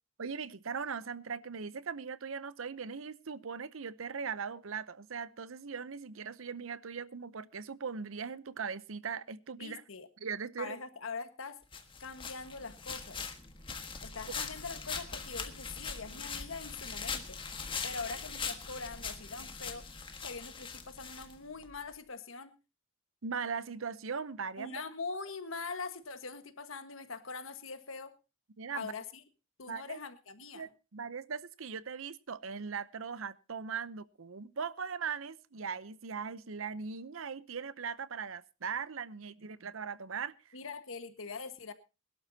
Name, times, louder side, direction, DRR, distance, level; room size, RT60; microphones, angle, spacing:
voice 1, 0.2-9.8 10.2-10.8 23.2-24.8 28.6-28.9 29.7-30.0 30.5-40.5, right 6 dB, 80° right, 0.7 m, -39 dB
voice 2, 9.6-10.1 10.6-11.6 12.0-13.2 14.0-17.4 17.8-19.9 20.2-22.5 24.6-28.1 28.7-29.2 29.6-30.7 40.5-41.7, left 4 dB, 80° left, 1.5 m, -43 dB
sound 1, 11.7-21.7, left 5 dB, 25° left, 1.5 m, -41 dB
21.5 x 12.0 x 2.8 m
head